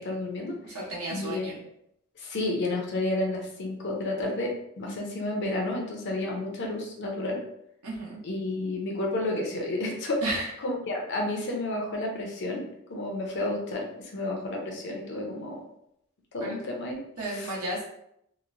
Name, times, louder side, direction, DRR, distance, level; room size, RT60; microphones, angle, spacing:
voice 1, 0.0-0.8 1.1-1.5 2.2-7.4 8.2-12.6 12.9-15.6 16.3-17.0 17.3-17.5, left 2 dB, 50° left, 0 dB, 0.6 m, -31 dB
voice 2, 0.6-1.6 7.8-8.2 10.2-10.5 16.4-16.6 17.2-17.9, right 1 dB, 80° right, -5 dB, 0.9 m, -33 dB
2.9 x 2.0 x 2.5 m, 0.75 s
head